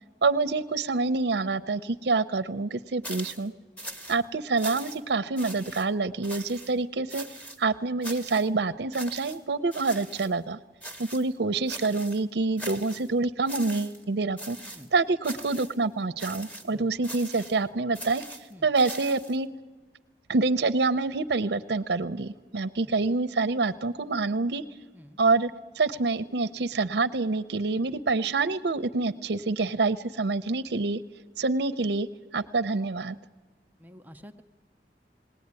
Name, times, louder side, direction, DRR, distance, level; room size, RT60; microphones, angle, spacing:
voice 1, 0.2-3.5 4.1-7.2 7.6-10.6 11.0-14.6 14.9-18.2 18.6-19.5 20.3-24.6 25.2-25.5 25.8-31.0 31.4-32.1 32.3-33.2, right 3 dB, 75° right, 14 dB, 0.6 m, -26 dB
sound 1, 3.0-3.5 3.8-4.2 4.6-5.1 5.4-5.9 6.2-6.7 7.1-7.6 8.0-8.5 8.9-9.4 9.7-10.3 10.8-11.3 11.7-12.2 12.6-13.1 13.5-14.0 14.4-14.9 15.2-15.8 16.2-16.7 17.0-17.6 17.9-19.4, right 1 dB, 10° left, 1.0 m, -41 dB
voice 2, 33.8-34.4, equal, 10° right, 7 dB, 0.6 m, -48 dB
20.0 x 18.0 x 9.6 m, 1.3 s
head